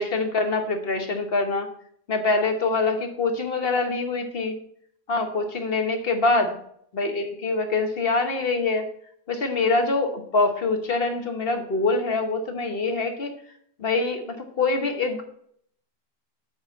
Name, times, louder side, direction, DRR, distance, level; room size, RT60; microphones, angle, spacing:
voice 1, 0.0-1.7 2.1-4.5 5.1-6.6 6.9-8.8 9.3-13.3 13.8-15.2, left 3 dB, 40° left, 6 dB, 1.1 m, -24 dB
7.8 x 4.3 x 7.0 m, 0.65 s
omnidirectional pair, 1.8 m